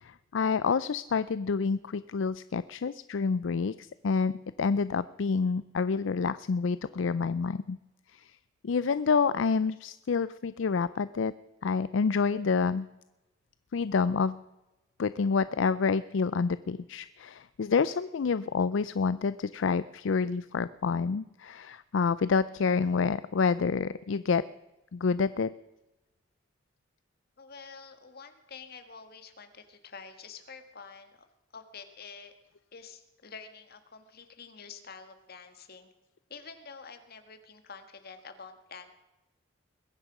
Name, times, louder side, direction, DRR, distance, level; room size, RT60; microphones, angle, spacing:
voice 1, 0.0-7.8 8.1-8.3 8.6-11.3 11.6-12.9 13.7-14.4 15.0-24.4 24.9-25.5, left 5 dB, 70° left, 16 dB, 0.4 m, -28 dB
voice 2, 27.4-31.2 31.5-32.3 32.7-35.9 36.3-38.9, left 5 dB, 50° left, 8 dB, 1.7 m, -48 dB
22.0 x 10.5 x 6.0 m, 1.0 s
head